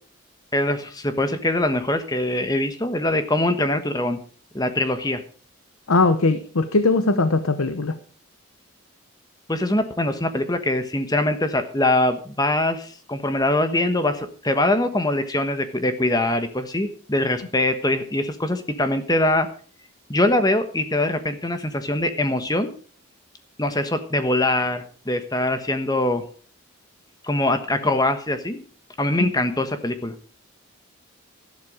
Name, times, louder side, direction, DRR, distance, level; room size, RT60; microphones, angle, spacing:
voice 1, 0.5-4.2 4.5-5.2 9.5-19.5 20.1-22.7 23.6-26.2 27.2-28.6 29.0-30.1, left 1 dB, 20° left, 9 dB, 1.2 m, -23 dB
voice 2, 5.9-8.0 29.2-29.3, left 3 dB, 80° left, 11 dB, 1.0 m, -20 dB
13.0 x 11.5 x 5.0 m, 0.42 s
head